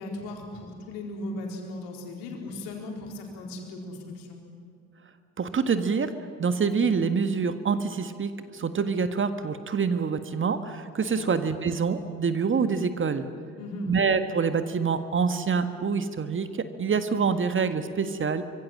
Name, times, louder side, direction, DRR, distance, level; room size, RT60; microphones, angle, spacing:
voice 1, 0.0-4.4 11.2-11.3 13.6-13.9, left 1 dB, 65° left, 1 dB, 4.4 m, -37 dB
voice 2, 5.4-6.1 6.4-13.3 13.9-18.4, right 5 dB, 30° right, 10 dB, 1.6 m, -26 dB
25.0 x 23.5 x 7.7 m, 2.4 s
figure-of-eight pair, 50°, 39 cm